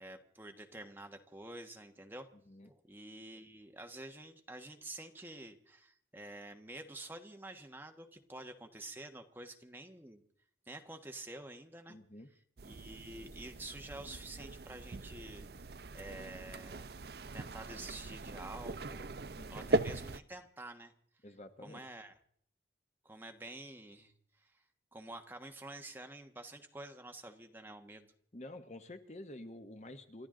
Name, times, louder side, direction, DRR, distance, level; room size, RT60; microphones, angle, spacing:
voice 1, 0.0-2.3 2.6-10.2 10.7-12.0 12.6-16.9 17.3-20.9 21.6-22.1 23.0-24.6 24.9-28.1, right 2 dB, 10° right, 4 dB, 1.3 m, -49 dB
voice 2, 11.9-12.3 19.3-19.7 21.2-21.9 28.3-30.3, left 1 dB, 40° left, 8 dB, 1.1 m, -49 dB
sound 1, 12.6-20.2, right 2 dB, 60° right, 0.6 m, -40 dB
29.0 x 12.5 x 3.8 m, 0.62 s
head